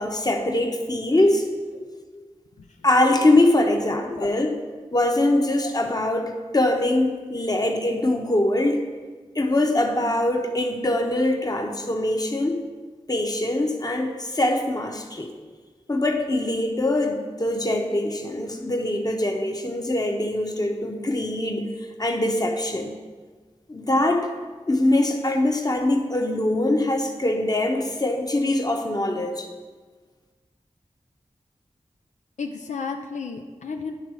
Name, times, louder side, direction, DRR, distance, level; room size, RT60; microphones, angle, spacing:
voice 1, 0.0-1.5 2.1-2.2 2.8-4.5 4.9-8.8 9.3-12.6 13.1-15.3 15.9-21.7 22.0-22.9 23.7-24.3 24.7-29.5, left 1 dB, 35° left, 3 dB, 1.0 m, -23 dB
voice 2, 32.4-33.9, left 4 dB, 85° left, 3 dB, 0.5 m, -33 dB
10.0 x 3.9 x 6.3 m, 1.4 s
cardioid pair, 50°, 12 cm